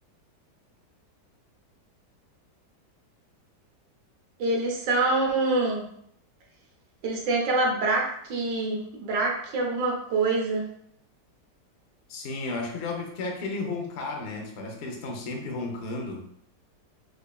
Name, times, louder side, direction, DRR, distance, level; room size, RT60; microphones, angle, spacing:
voice 1, 4.4-5.8 7.0-10.7, right 2 dB, 85° right, -1 dB, 1.5 m, -25 dB
voice 2, 12.1-16.3, left 3 dB, 60° left, 1 dB, 0.6 m, -33 dB
4.8 x 2.5 x 2.2 m, 0.70 s
omnidirectional pair, 1.9 m